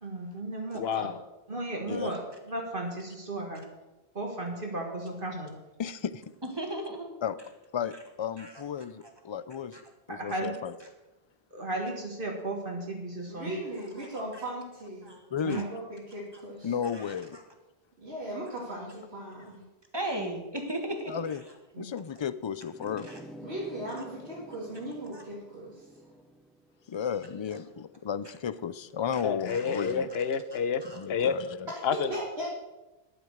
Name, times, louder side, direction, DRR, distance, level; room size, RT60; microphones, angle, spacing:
voice 1, 0.0-1.1 1.5-3.6 4.1-5.5 10.1-10.5 11.5-13.5 15.4-15.6 21.7-21.9, right 2 dB, 55° right, 0 dB, 2.1 m, -35 dB
voice 2, 0.7-1.2 29.2-30.8 31.1-31.3 31.8-32.1, left 6 dB, 75° left, 13 dB, 1.0 m, -29 dB
voice 3, 5.8-6.2 7.2-7.3 7.7-9.8 10.1-10.7 15.3-15.6 16.6-17.4 21.1-21.4 21.8-23.1 26.9-30.1 30.9-31.7, left 7 dB, 40° left, 15 dB, 0.4 m, -33 dB
voice 4, 6.6-7.1 8.4-8.5 9.7-9.8 15.0-15.2 16.8-17.2 19.9-21.2 23.1-23.2 25.1-25.2 29.5-29.9 30.8-31.0, right 1 dB, 25° right, 3 dB, 1.7 m, -36 dB
voice 5, 13.3-15.2 15.5-16.7 18.0-19.6 23.4-25.9 32.1-32.5, right 1 dB, 85° right, -6 dB, 2.7 m, -38 dB
sound 1, 22.7-28.0, equal, ahead, 0.6 m, -49 dB
10.5 x 9.3 x 6.5 m, 1.1 s
omnidirectional pair, 1.1 m